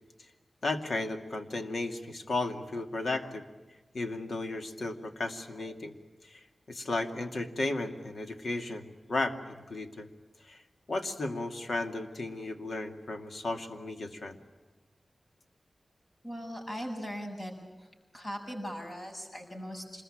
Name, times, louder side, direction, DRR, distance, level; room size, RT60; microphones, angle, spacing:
voice 1, 0.6-3.4 3.9-5.9 6.2-6.4 6.7-10.1 10.4-10.6 10.9-14.4, left 2 dB, 65° left, 5 dB, 2.4 m, -34 dB
voice 2, 16.2-17.5 17.8-20.0, equal, 30° left, 1 dB, 7.8 m, -39 dB
26.5 x 21.5 x 8.9 m, 1.2 s
wide cardioid pair, 115°, 0 cm